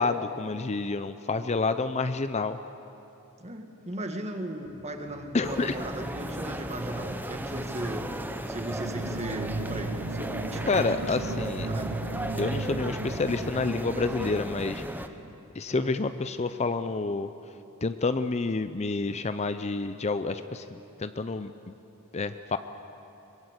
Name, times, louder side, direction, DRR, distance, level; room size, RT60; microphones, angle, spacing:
voice 1, 0.0-2.6 5.3-5.7 10.7-11.7 12.4-14.8 15.6-17.3 17.8-20.7 21.0-21.5 22.1-22.6, left 3 dB, 30° left, 10 dB, 0.5 m, -28 dB
voice 2, 3.4-10.7 11.5-11.9 15.7-16.0, right 1 dB, 30° right, 4 dB, 2.0 m, -37 dB
Bass guitar, 4.6-5.3 5.8-5.9 6.2-7.8 8.6-10.2 11.0-12.1 12.4-14.2, equal, 45° right, 2.3 m, -51 dB
sound 1, 5.4-15.1, right 1 dB, 10° right, 0.9 m, -36 dB
sound 2, 8.6-15.3, right 3 dB, 75° right, 0.9 m, -36 dB
23.5 x 21.5 x 8.2 m, 2.9 s
head